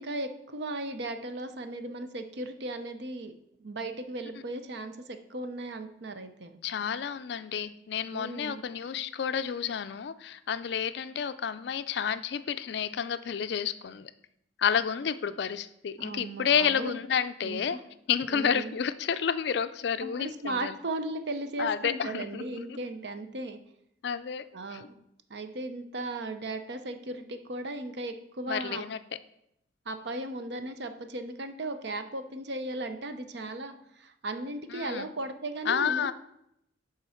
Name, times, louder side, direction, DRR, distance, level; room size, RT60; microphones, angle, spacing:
voice 1, 0.0-3.3 3.6-6.6 8.1-8.6 16.0-17.0 17.4-17.8 18.3-18.7 20.0-23.6 24.5-25.0 25.3-28.8 29.9-36.1, right 2 dB, 60° right, 8 dB, 0.6 m, -36 dB
voice 2, 6.6-14.1 14.6-17.8 18.1-20.7 21.6-22.8 24.0-24.4 24.7-24.8 28.5-29.0 34.7-35.1 35.7-36.1, left 7 dB, 60° left, 12 dB, 0.4 m, -30 dB
7.2 x 3.8 x 5.6 m, 0.77 s
head